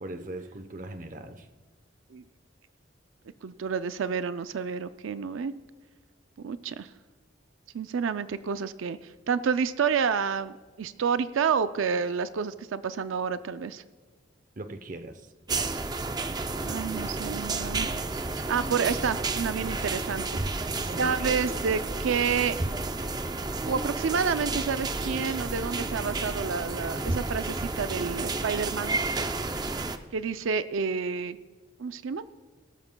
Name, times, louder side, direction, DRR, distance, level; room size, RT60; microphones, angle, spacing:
voice 1, 0.0-1.5 14.6-15.3 20.8-21.3, right 2 dB, 40° right, 9 dB, 0.8 m, -39 dB
voice 2, 3.4-5.5 6.4-6.9 7.7-9.0 9.3-13.8 16.6-17.9 18.5-20.4 21.0-22.6 23.6-29.0 30.1-31.4 31.8-32.2, right 6 dB, 85° right, 12 dB, 0.4 m, -29 dB
sound 1, 15.5-30.0, right 3 dB, 20° right, 0.5 m, -31 dB
17.5 x 13.0 x 2.2 m, 1.4 s
head